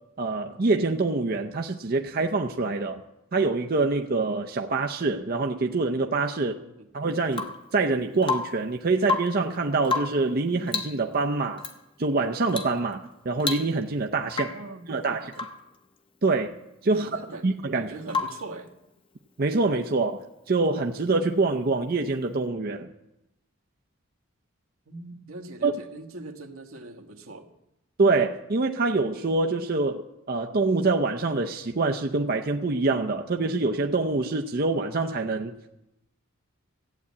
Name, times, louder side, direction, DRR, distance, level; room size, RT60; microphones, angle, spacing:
voice 1, 0.2-3.0 3.3-6.5 6.9-11.6 12.0-14.5 14.9-15.4 16.2-16.5 16.8-17.9 19.4-22.9 25.6-25.7 28.0-35.7, right 3 dB, 45° right, 0.6 m, -25 dB
voice 2, 6.5-6.9 14.4-15.2 16.9-17.4 17.7-18.7 24.9-27.5, right 2 dB, 80° right, 1.4 m, -41 dB
Rain / Water tap faucet / Drip, 7.3-7.7 8.2-8.7 9.0-9.5 9.8-10.3 10.7-11.0 11.6-11.8 12.5-12.8 13.1-13.2 13.4-14.0 14.3-14.7 15.3-15.7 18.1-18.5 20.4-20.5, left 4 dB, 25° left, 0.8 m, -31 dB
14.5 x 8.4 x 8.5 m
head